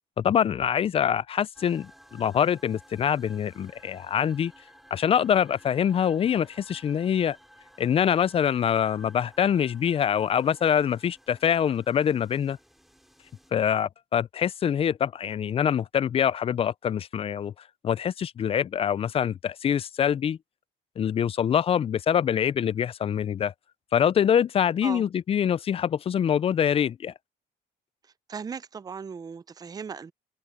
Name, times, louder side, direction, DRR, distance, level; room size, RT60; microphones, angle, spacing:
voice 1, 0.2-4.5 4.9-7.4 7.8-12.6 13.5-17.5 17.8-20.4 21.0-23.5 23.9-27.1, left 8 dB, 35° left, 0.4 m, -25 dB
sound 1, 1.5-13.5, equal, ahead, 6.0 m, -55 dB
voice 2, 28.3-30.1, right 6 dB, 20° right, 0.5 m, -37 dB
cardioid pair, 110°, 17 cm